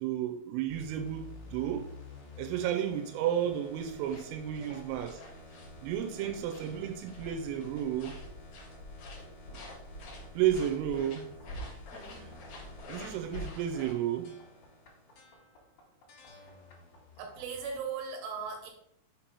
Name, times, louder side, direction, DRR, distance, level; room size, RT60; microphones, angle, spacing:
voice 1, 0.0-1.9 2.4-5.2 5.8-8.2 10.3-11.3 12.9-14.3, right 10 dB, 90° right, 4 dB, 3.2 m, -32 dB
sound 1, 0.7-17.8, left 2 dB, 50° left, 2.6 m, -52 dB
voice 2, 2.6-3.0 4.6-4.9 5.7-5.9 6.2-6.4 11.9-12.4 16.2-16.6 17.2-18.7, right 5 dB, 70° right, 1 dB, 3.3 m, -41 dB
sound 2, 3.8-13.9, left 1 dB, 75° left, 1.7 m, -47 dB
7.1 x 2.9 x 5.4 m, 0.71 s
omnidirectional pair, 5.7 m